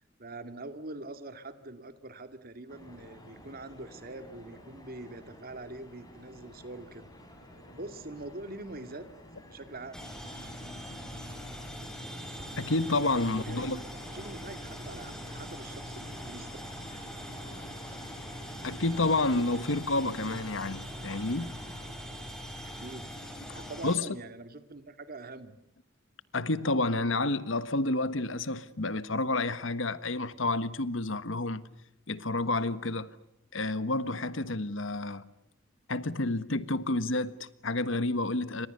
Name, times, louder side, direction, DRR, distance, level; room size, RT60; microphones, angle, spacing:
voice 1, 0.2-7.1 7.7-9.1 9.5-10.0 13.1-16.6 22.6-23.1 23.4-25.6, right 2 dB, 50° right, 2.5 m, -44 dB
sound 1, 2.7-21.9, equal, 20° left, 7.8 m, -50 dB
sound 2, 9.9-23.9, equal, 5° left, 6.9 m, -42 dB
voice 2, 12.6-13.8 18.6-21.5 23.5-24.1 26.3-31.6 32.1-33.1 33.5-35.2 35.9-38.7, left 2 dB, 75° left, 1.4 m, -30 dB
29.5 x 25.5 x 6.8 m
head